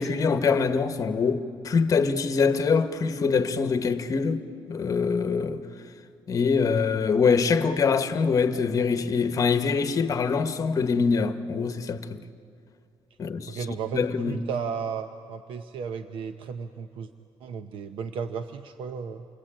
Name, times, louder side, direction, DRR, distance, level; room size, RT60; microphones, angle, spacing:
voice 1, 0.0-5.6 6.3-12.2 13.2-14.4, left 5 dB, 40° left, 1.2 m, -24 dB
voice 2, 13.5-17.1 17.4-19.3, right 6 dB, 90° right, 0.9 m, -34 dB
29.0 x 23.0 x 8.8 m
cardioid pair, 150°, 9 cm